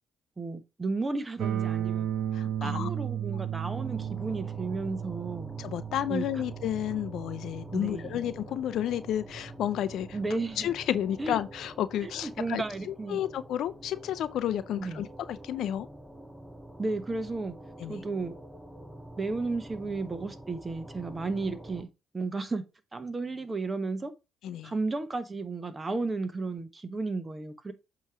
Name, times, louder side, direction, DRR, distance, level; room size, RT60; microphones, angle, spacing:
voice 1, 0.4-2.1 2.6-5.5 6.1-6.3 7.7-8.2 10.1-10.7 11.2-11.4 12.0-13.2 14.8-15.1 16.8-17.5 17.9-18.3 19.2-21.9 22.1-22.6 22.9-24.1 24.6-27.7, right 3 dB, 30° right, 1.2 m, -33 dB
sound 1, 1.4-11.3, right 10 dB, 75° right, 0.7 m, -36 dB
voice 2, 2.3-2.9 5.6-10.2 10.6-15.9 17.8-18.0 24.4-24.7, left 11 dB, 75° left, 0.5 m, -31 dB
sound 2, 3.7-21.8, right 1 dB, 5° right, 1.4 m, -47 dB
8.0 x 3.1 x 4.8 m
supercardioid pair, 60°, 0 cm